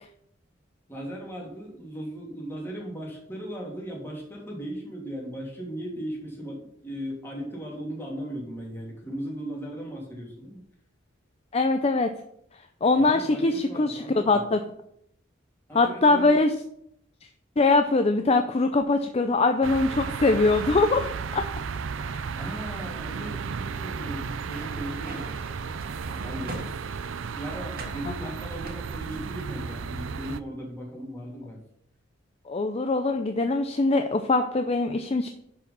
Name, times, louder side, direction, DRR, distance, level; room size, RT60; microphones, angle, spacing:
voice 1, 0.9-10.6 13.0-14.4 15.7-16.3 22.4-25.2 25.9-26.8 27.3-31.6, equal, 10° left, -3 dB, 2.7 m, -37 dB
voice 2, 11.5-12.1 12.8-14.6 15.7-16.5 17.6-21.4 22.0-22.3 32.5-35.3, left 3 dB, 30° left, 7 dB, 0.5 m, -22 dB
sound 1, 19.6-30.4, right 5 dB, 85° right, 0.5 m, -34 dB
sound 2, 24.3-27.2 27.7-28.0 28.6-29.8 30.1-30.4, right 2 dB, 50° right, 1.8 m, -43 dB
10.5 x 4.9 x 5.5 m, 0.73 s
head